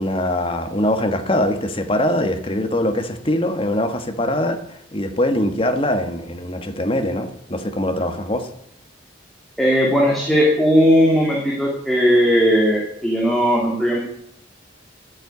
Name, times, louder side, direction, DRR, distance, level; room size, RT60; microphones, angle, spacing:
voice 1, 0.0-8.5, left 1 dB, 30° left, 7 dB, 1.5 m, -22 dB
voice 2, 9.6-14.0, equal, ahead, -4 dB, 2.7 m, -17 dB
13.0 x 8.9 x 8.4 m, 0.75 s
head